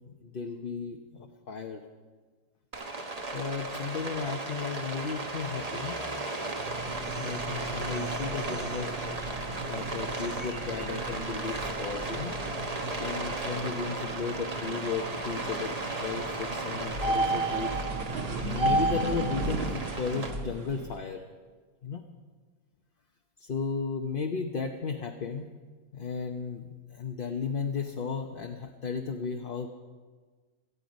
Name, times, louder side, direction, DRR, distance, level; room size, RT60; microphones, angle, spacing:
voice 1, 0.1-1.8 3.3-6.0 7.2-8.9 9.7-12.3 13.0-17.7 18.4-21.2 21.8-22.0 23.4-25.5 25.9-29.7, left 5 dB, 45° left, 3 dB, 0.9 m, -34 dB
Rain, 2.7-20.3, right 2 dB, 30° right, 1.1 m, -35 dB
sound 1, 6.5-21.0, right 2 dB, 45° right, 1.3 m, -34 dB
18.0 x 14.0 x 5.2 m, 1.4 s
omnidirectional pair, 1.6 m